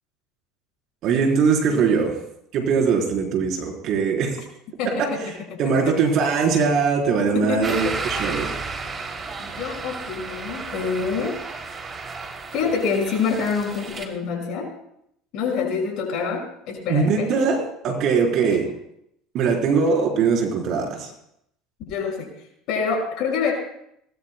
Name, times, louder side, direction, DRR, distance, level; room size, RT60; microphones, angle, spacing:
voice 1, 1.0-2.2 2.5-4.4 4.8-5.1 5.6-8.5 16.9-18.7 19.3-21.1, right 5 dB, 55° right, 1 dB, 3.9 m, -21 dB
voice 2, 4.8-5.2 5.5-5.6 5.9-6.0 7.3-8.0 9.4-11.4 12.5-14.7 15.3-17.3 18.1-18.2 18.5-18.6 21.9-22.3 22.7-23.5, left 5 dB, 60° left, 1 dB, 5.6 m, -26 dB
sound 1, 7.6-14.1, right 4 dB, 30° right, 2.8 m, -33 dB
20.0 x 20.0 x 2.2 m, 0.75 s
hypercardioid pair, 75°, 0 cm